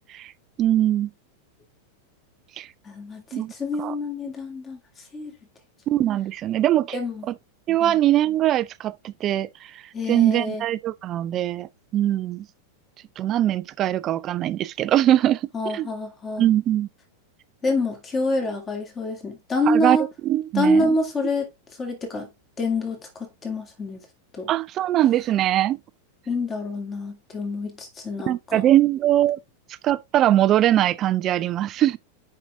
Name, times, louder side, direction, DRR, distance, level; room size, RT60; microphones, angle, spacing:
voice 1, 0.6-1.1 2.6-2.7 3.3-3.5 3.8-4.0 5.9-7.4 7.7-12.5 13.2-15.9 16.4-16.9 19.7-20.0 20.2-20.9 24.5-25.8 28.3-29.4 29.8-32.0, right 12 dB, 30° right, 0.4 m, -22 dB
voice 2, 2.9-4.8 5.1-5.3 6.9-7.3 7.8-8.0 9.9-10.6 15.5-16.5 17.6-20.0 20.5-21.5 21.8-22.3 22.6-24.0 24.3-24.5 26.3-28.6, left 1 dB, 20° left, 2.4 m, -26 dB
7.1 x 5.4 x 3.5 m
figure-of-eight pair, 90°, 0 cm